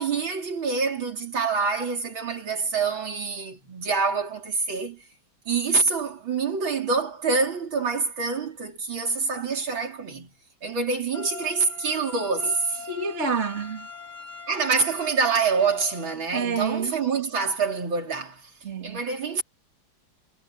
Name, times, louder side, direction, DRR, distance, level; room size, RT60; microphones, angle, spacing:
voice 1, 0.0-5.0 5.5-10.3 10.6-12.6 14.5-18.5 18.8-19.4, right 4 dB, 75° right, 4.4 m, -26 dB
sound 1, 11.1-16.1, left 4 dB, 50° left, 6.8 m, -41 dB
voice 2, 12.8-13.9 16.3-17.0 18.6-19.0, right 5 dB, 35° right, 2.4 m, -28 dB
omnidirectional pair, 2.2 m